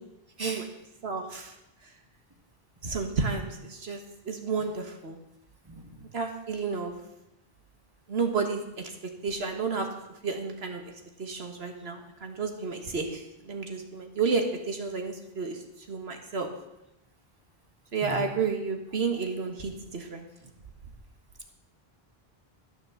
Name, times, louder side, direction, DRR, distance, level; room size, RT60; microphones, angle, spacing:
voice 1, 1.0-1.5 2.8-4.0 4.3-5.2 6.1-6.9 8.1-8.9 9.2-10.9 11.2-15.6 15.9-16.5 17.9-20.3, right 4 dB, 85° right, 4 dB, 1.8 m, -31 dB
voice 2, 5.7-6.1 18.0-18.3 19.1-19.2, right 2 dB, 20° right, 3 dB, 1.4 m, -39 dB
12.0 x 7.0 x 7.1 m, 0.91 s
omnidirectional pair, 1.0 m